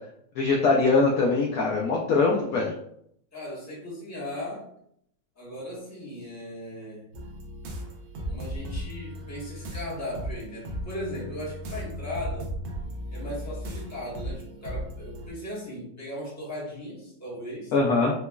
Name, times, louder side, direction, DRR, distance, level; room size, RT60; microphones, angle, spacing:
voice 1, 0.4-2.7 17.7-18.1, left 3 dB, 80° left, -2 dB, 0.8 m, -22 dB
voice 2, 3.3-4.7 5.3-7.1 8.3-12.5 13.1-17.7, left 1 dB, 10° left, -6 dB, 0.8 m, -37 dB
sound 1, 7.1-15.3, equal, 85° right, 1.5 m, -36 dB
4.8 x 2.3 x 2.3 m, 0.71 s
omnidirectional pair, 2.1 m